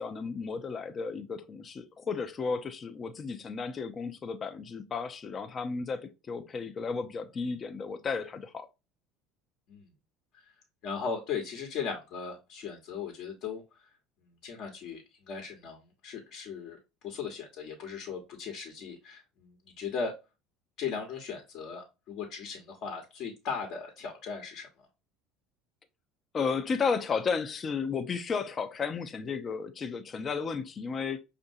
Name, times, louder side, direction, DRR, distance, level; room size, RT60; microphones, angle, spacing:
voice 1, 0.0-8.7 26.3-31.2, left 5 dB, 35° left, 0.5 m, -33 dB
voice 2, 10.8-13.6 14.4-15.0 15.3-16.8 17.0-20.2 20.8-24.7, left 6 dB, 65° left, 1.0 m, -37 dB
5.3 x 2.6 x 2.6 m
supercardioid pair, 95°, 0 cm